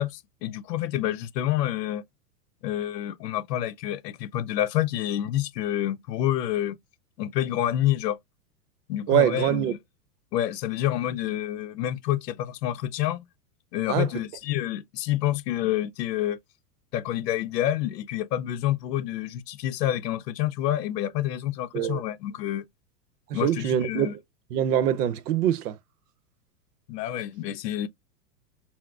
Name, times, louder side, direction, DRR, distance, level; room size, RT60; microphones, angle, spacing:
voice 1, 0.0-2.0 2.6-6.8 7.2-8.2 8.9-9.8 10.3-13.2 13.7-16.4 16.9-22.7 23.3-24.2 26.9-27.9, left 12 dB, 85° left, 0.6 m, -28 dB
voice 2, 9.1-9.7 13.9-14.1 21.7-22.0 23.3-24.2 24.5-25.8, right 10 dB, 75° right, 0.7 m, -24 dB
5.8 x 2.0 x 2.3 m
supercardioid pair, 135°, 48 cm